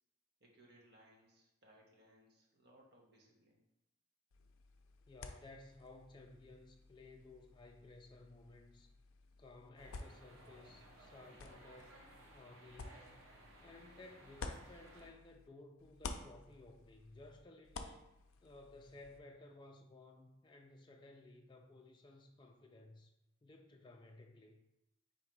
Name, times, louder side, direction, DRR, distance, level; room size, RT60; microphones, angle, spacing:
voice 1, 0.4-3.6, right 1 dB, 55° right, -2 dB, 1.1 m, -66 dB
sound 1, 4.3-15.5 15.8-19.2, left 4 dB, 85° left, 0.4 m, -53 dB
voice 2, 5.1-8.9 9.4-12.0 12.3-13.1 13.6-18.1 18.4-23.1 23.4-24.6, left 2 dB, 25° left, 2 dB, 0.4 m, -57 dB
sound 2, 9.8-15.1, right 1 dB, 85° right, 0.8 m, -60 dB
4.0 x 2.8 x 4.6 m, 0.90 s
head